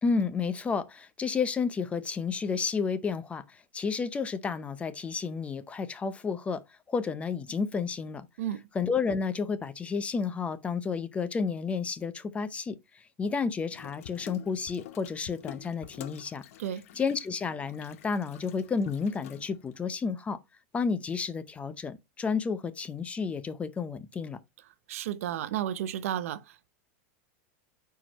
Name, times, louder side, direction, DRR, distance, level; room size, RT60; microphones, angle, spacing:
voice 1, 0.0-6.6 6.9-8.3 8.7-12.8 13.2-16.4 17.0-20.4 20.7-24.4, left 5 dB, 15° left, 0.6 m, -31 dB
Water tap faucet / Sink (filling or washing), 13.7-19.9, left 11 dB, 75° left, 0.9 m, -49 dB
voice 2, 24.9-26.7, right 11 dB, 80° right, 0.7 m, -32 dB
8.6 x 4.7 x 3.0 m
supercardioid pair, 135°, 8 cm